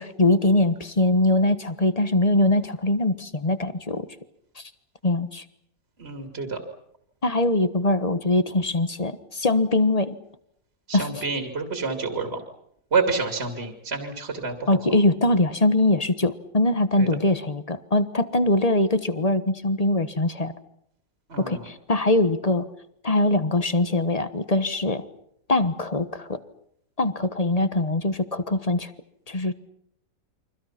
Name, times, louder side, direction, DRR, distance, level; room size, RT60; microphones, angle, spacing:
voice 1, 0.0-4.1 4.6-4.7 5.0-5.4 7.2-10.1 10.9-11.1 14.7-20.5 21.4-22.7 23.0-25.0 25.5-26.4 27.0-28.9 29.3-29.5, left 2 dB, 25° left, 12 dB, 1.2 m, -22 dB
voice 2, 6.0-6.6 10.9-12.4 12.9-14.8 17.0-17.1 21.3-21.7, right 4 dB, 35° right, 5 dB, 2.9 m, -28 dB
29.5 x 24.5 x 5.9 m, 0.72 s
omnidirectional pair, 1.8 m